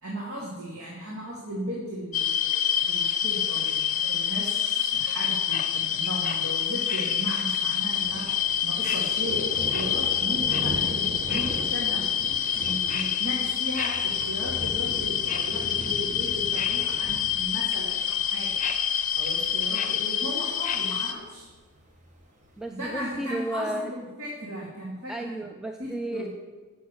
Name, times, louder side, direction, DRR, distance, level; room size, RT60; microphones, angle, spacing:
voice 1, 0.0-8.3 8.6-12.1 12.5-18.6 19.1-21.5 22.7-25.4 25.8-26.3, equal, 75° right, -5 dB, 2.3 m, -36 dB
sound 1, 2.1-21.1, left 9 dB, 35° left, 0.7 m, -27 dB
Thunder, 7.6-23.1, right 1 dB, 35° right, 1.3 m, -41 dB
voice 2, 22.6-23.9 25.1-26.3, right 1 dB, ahead, 4 dB, 0.3 m, -33 dB
8.2 x 7.0 x 6.1 m, 1.3 s
head